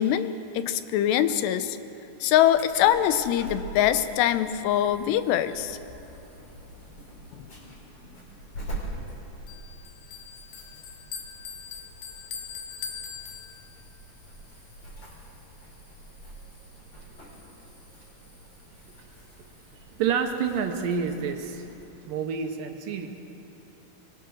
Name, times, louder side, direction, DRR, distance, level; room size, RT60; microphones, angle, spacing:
voice 1, 0.0-1.8 2.2-5.8 7.4-7.5, left 11 dB, 90° left, 11 dB, 2.9 m, -23 dB
Insect / Alarm, 2.4-21.9, right 1 dB, 35° left, 5.3 m, -44 dB
Bell, 9.5-14.0, left 7 dB, 75° left, 2.9 m, -41 dB
voice 2, 20.0-21.7 22.0-23.1, right 6 dB, 70° right, 5 dB, 2.4 m, -28 dB
23.0 x 21.5 x 6.4 m, 2.9 s
omnidirectional pair, 4.7 m